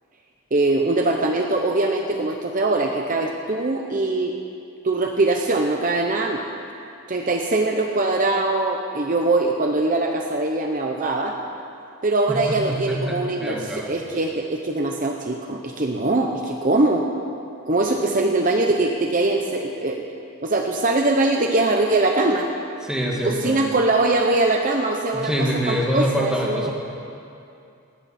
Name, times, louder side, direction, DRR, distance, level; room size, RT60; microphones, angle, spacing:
voice 1, 0.5-4.4 4.8-6.5 7.1-11.3 12.0-17.1 17.7-20.0 20.4-22.5 23.2-26.7, right 2 dB, 35° right, 2 dB, 0.8 m, -22 dB
voice 2, 12.5-13.9 22.8-23.6 25.1-26.7, equal, 5° right, -2 dB, 1.9 m, -25 dB
19.5 x 17.0 x 4.3 m, 2.6 s
head